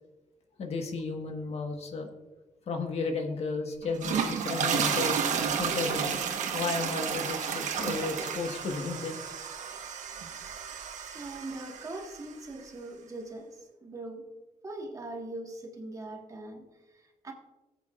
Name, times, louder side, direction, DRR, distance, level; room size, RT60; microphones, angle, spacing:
voice 1, 0.6-2.1 2.7-5.2 5.6-6.2 6.5-9.2, left 4 dB, 55° left, 4 dB, 1.4 m, -33 dB
sound 1, 3.8-12.2, right 7 dB, 80° right, 1.2 m, -32 dB
voice 2, 11.1-14.3 14.6-17.3, right 2 dB, 25° right, 2 dB, 1.5 m, -41 dB
18.5 x 8.1 x 2.4 m, 1.1 s
cardioid pair, 130°, 12 cm